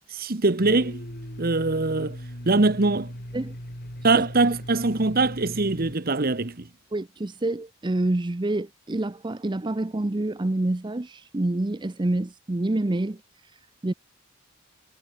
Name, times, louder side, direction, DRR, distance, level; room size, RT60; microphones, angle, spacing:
voice 1, 0.1-1.0 1.4-2.2 2.4-3.1 4.0-6.7, right 3 dB, 40° right, 1.1 m, -22 dB
Domestic sounds home sounds, 0.6-6.0, equal, 45° left, 6.4 m, -38 dB
voice 2, 6.9-13.9, right 2 dB, 20° right, 0.5 m, -27 dB
head